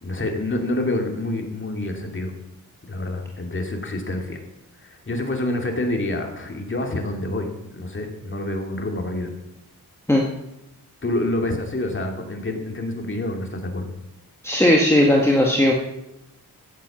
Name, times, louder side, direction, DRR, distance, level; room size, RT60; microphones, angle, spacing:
voice 1, 0.0-2.3 2.8-4.4 4.8-9.3 11.0-13.9, left 1 dB, 30° left, 3 dB, 2.6 m, -27 dB
voice 2, 14.4-15.7, left 1 dB, 5° left, -1 dB, 1.7 m, -17 dB
15.0 x 8.3 x 7.3 m, 0.88 s
wide cardioid pair, 120°, 37 cm